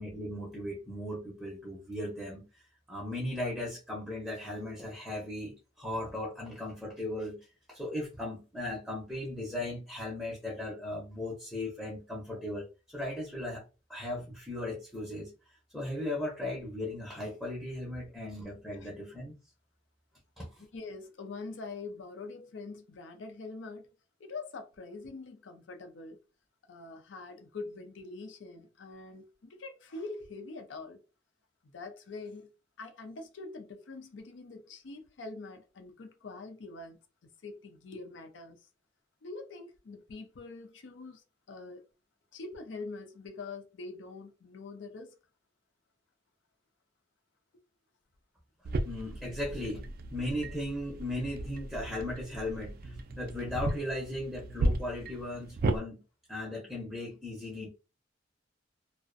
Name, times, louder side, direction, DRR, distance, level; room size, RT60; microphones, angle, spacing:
voice 1, 0.0-2.6 2.9-13.6 13.9-15.3 15.7-19.3 20.4-20.6 48.8-56.0 56.3-57.7, left 1 dB, ahead, 0.5 m, -37 dB
voice 2, 20.7-23.9 24.2-26.2 26.7-31.0 31.7-32.5 32.8-37.0 37.4-38.7 39.2-41.8 42.3-45.2, left 3 dB, 80° left, 0.5 m, -44 dB
sound 1, 48.6-55.8, right 1 dB, 55° right, 0.3 m, -35 dB
2.4 x 2.1 x 2.5 m
head